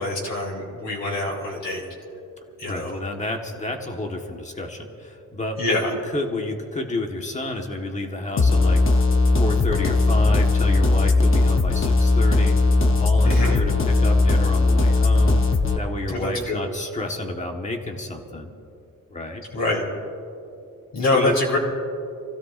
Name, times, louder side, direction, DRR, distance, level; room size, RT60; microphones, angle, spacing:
voice 1, 0.0-1.8 2.6-2.9 5.6-5.9 13.2-13.6 16.1-16.6 19.5-19.8 20.9-21.6, left 2 dB, 55° left, -4 dB, 3.2 m, -24 dB
voice 2, 2.7-5.8 6.0-9.1 9.4-12.6 12.9-15.4 15.7-18.5 19.1-19.4 21.0-21.3, left 2 dB, 20° left, 3 dB, 1.3 m, -30 dB
sound 1, 8.4-15.8, left 3 dB, 35° left, 0.8 m, -18 dB
28.0 x 16.0 x 2.5 m, 2.6 s
wide cardioid pair, 170°, 34 cm